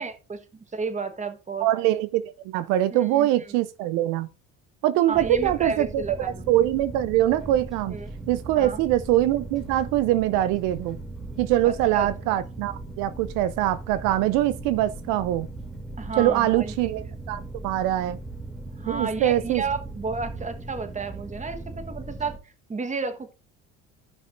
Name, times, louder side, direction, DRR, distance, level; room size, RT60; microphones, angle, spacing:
voice 1, 0.0-1.7 2.9-3.3 5.1-6.4 7.9-8.1 8.6-8.8 11.6-12.4 16.0-16.7 18.8-23.3, right 4 dB, 20° right, 1.3 m, -32 dB
voice 2, 1.6-4.3 4.8-6.0 6.5-8.0 8.3-11.0 11.4-15.5 16.2-18.2 18.9-19.6, right 13 dB, 75° right, 0.6 m, -23 dB
sound 1, 5.1-22.4, right 2 dB, ahead, 2.8 m, -38 dB
14.5 x 5.7 x 2.6 m
supercardioid pair, 85°, 33 cm